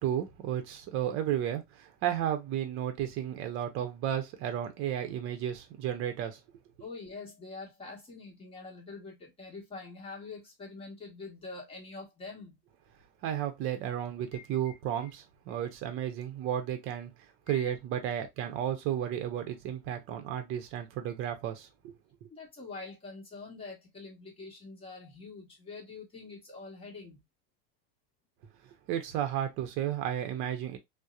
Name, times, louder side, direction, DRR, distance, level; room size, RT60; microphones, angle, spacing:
voice 1, 0.0-6.4 13.2-17.1 17.5-22.3 28.9-30.8, right 10 dB, 45° right, 0.7 m, -33 dB
voice 2, 6.8-12.6 14.3-14.7 15.0-15.1 15.5-15.7 17.5-17.7 22.3-27.2, left 3 dB, 20° left, 1.2 m, -45 dB
2.8 x 2.1 x 2.3 m
supercardioid pair, 140°, 30 cm